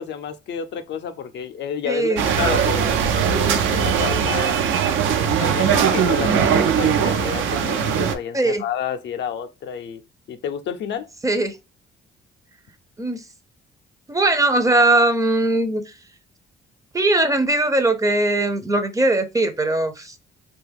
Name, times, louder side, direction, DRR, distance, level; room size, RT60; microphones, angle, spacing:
voice 1, 0.0-4.6 5.4-10.0 10.3-11.1, left 8 dB, 65° left, 0.4 m, -30 dB
voice 2, 1.9-2.2 8.3-8.6 11.2-11.6 13.0-13.2 14.1-15.9 16.9-20.2, right 2 dB, 15° right, 0.5 m, -20 dB
sound 1, 2.2-8.1, right 7 dB, 80° right, 0.5 m, -20 dB
2.9 x 2.2 x 3.3 m
cardioid pair, 90°, 20 cm